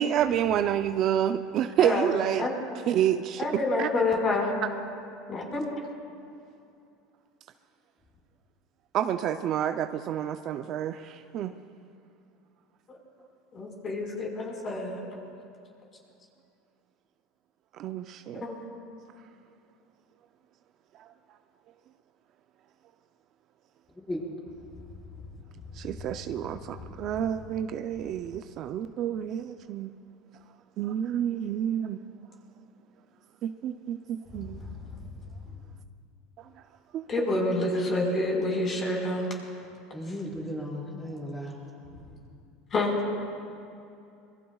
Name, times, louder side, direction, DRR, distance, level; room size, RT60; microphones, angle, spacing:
voice 1, 0.0-2.5 2.9-3.5 3.8-3.9 8.9-11.5 17.8-18.5 21.0-21.1 25.8-29.9 30.8-32.0 33.4-34.6 36.4-36.5 36.9-37.0, right 10 dB, 45° right, 0.5 m, -29 dB
voice 2, 1.8-2.1 2.4-2.5 3.4-4.6 5.3-5.6 13.5-15.1 18.4-18.6 26.8-26.9 34.5-34.6 37.1-39.3 42.7-42.9, left 2 dB, 30° left, 4.7 m, -28 dB
voice 3, 39.9-41.5, equal, 10° left, 5.1 m, -35 dB
26.0 x 23.0 x 2.4 m
supercardioid pair, 130°, 0 cm